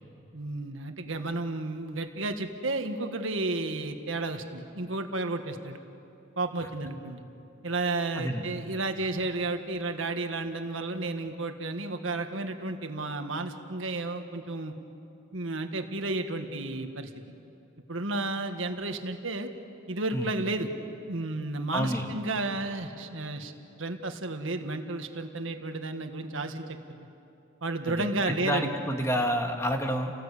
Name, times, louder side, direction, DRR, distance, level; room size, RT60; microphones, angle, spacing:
voice 1, 0.3-5.8 6.4-7.2 7.6-14.7 15.3-17.1 17.9-19.5 19.9-20.7 21.1-23.5 23.8-26.8 27.6-28.7, right 2 dB, 85° right, 6 dB, 1.7 m, -32 dB
voice 2, 8.2-8.5 20.1-20.3 21.7-22.1 27.9-30.1, equal, 15° left, 3 dB, 1.8 m, -29 dB
30.0 x 19.0 x 8.4 m, 2.7 s
head